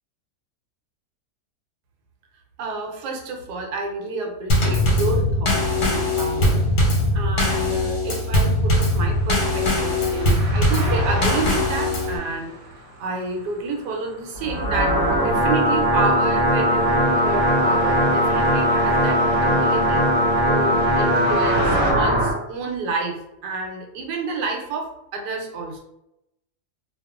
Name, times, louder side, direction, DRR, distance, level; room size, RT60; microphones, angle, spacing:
voice 1, 2.6-6.7 7.1-12.6 13.0-20.0 20.5-25.8, right 3 dB, 90° right, 2 dB, 1.2 m, -29 dB
Drum kit / Snare drum / Bass drum, 4.5-12.2, left 1 dB, 80° left, 1.3 m, -21 dB
sound 1, 8.8-21.9, right 1 dB, 70° right, 1.0 m, -35 dB
sound 2, 14.4-22.3, equal, 40° right, 0.9 m, -19 dB
2.9 x 2.3 x 2.3 m, 0.85 s
omnidirectional pair, 1.7 m